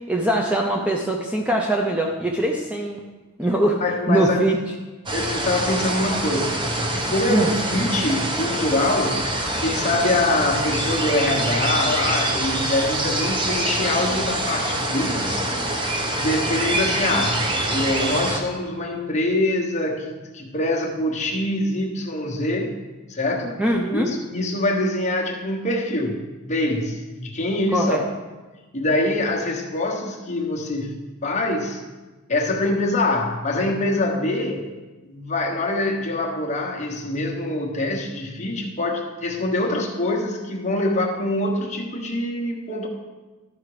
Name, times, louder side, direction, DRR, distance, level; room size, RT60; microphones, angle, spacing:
voice 1, 0.1-3.0 3.4-3.8 4.1-4.6 7.3-7.5 23.6-24.1 27.7-28.0, right 1 dB, 5° right, 1 dB, 0.6 m, -22 dB
voice 2, 3.8-4.5 5.1-9.3 9.6-15.6 16.1-22.7 23.1-23.6 23.9-28.0 28.7-31.0 31.2-31.8 32.3-34.7 35.0-42.9, left 2 dB, 30° left, -1 dB, 1.2 m, -24 dB
sound 1, 5.1-18.4, right 1 dB, 20° right, 1.0 m, -25 dB
12.5 x 5.8 x 5.0 m, 1.2 s
head